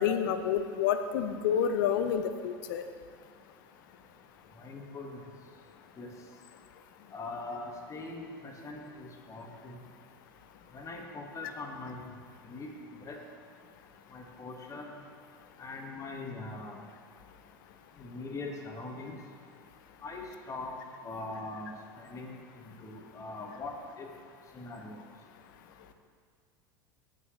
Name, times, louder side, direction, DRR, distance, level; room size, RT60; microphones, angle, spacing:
voice 1, 0.0-2.8, left 8 dB, 65° left, 9 dB, 0.7 m, -29 dB
voice 2, 4.6-5.2 6.0-6.1 7.1-9.8 10.7-12.0 12.4-12.7 13.0-13.2 14.1-14.9 15.6-16.8 18.0-19.2 20.0-20.7 21.0-24.1 24.5-25.0, left 3 dB, 25° left, 1 dB, 1.7 m, -42 dB
16.5 x 6.5 x 3.2 m, 2.1 s
hypercardioid pair, 80°, 12 cm